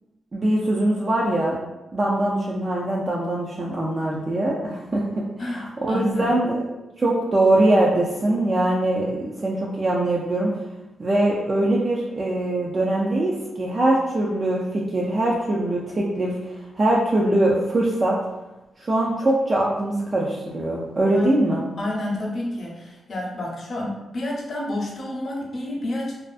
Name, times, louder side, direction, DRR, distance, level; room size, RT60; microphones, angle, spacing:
voice 1, 0.3-1.6 1.9-6.6 7.0-10.6 11.0-18.2 18.8-21.6, right 1 dB, 35° right, -4 dB, 0.3 m, -22 dB
voice 2, 5.4-6.3 21.1-21.4 21.8-26.2, left 1 dB, 50° left, -3 dB, 0.6 m, -30 dB
2.4 x 2.3 x 2.3 m, 1.0 s
wide cardioid pair, 120°, 0 cm